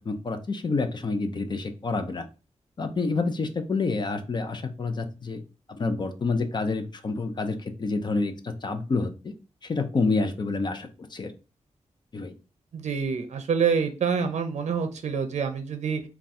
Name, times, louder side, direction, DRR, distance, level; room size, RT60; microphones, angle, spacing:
voice 1, 0.1-2.2 2.8-5.4 5.7-9.3 9.6-11.3 12.1-12.3, left 3 dB, 40° left, 7 dB, 0.5 m, -28 dB
voice 2, 12.7-16.0, right 6 dB, 75° right, 8 dB, 0.5 m, -26 dB
3.6 x 2.3 x 4.1 m, 0.32 s
wide cardioid pair, 150°, 12 cm